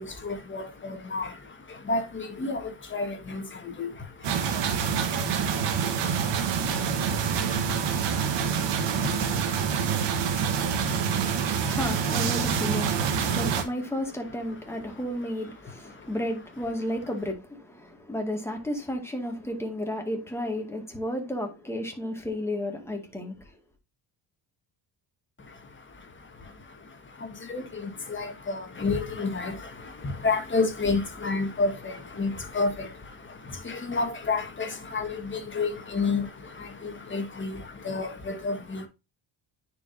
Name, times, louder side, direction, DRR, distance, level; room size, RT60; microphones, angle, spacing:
voice 1, 0.0-11.8 13.3-13.4 15.8-16.1 25.4-38.9, left 3 dB, 25° left, 1.6 m, -32 dB
sound 1, 4.2-13.6, right 7 dB, 75° right, 1.3 m, -26 dB
voice 2, 10.3-23.5, left 1 dB, 5° left, 2.0 m, -33 dB
9.5 x 5.0 x 2.7 m
cardioid pair, 120°, 43 cm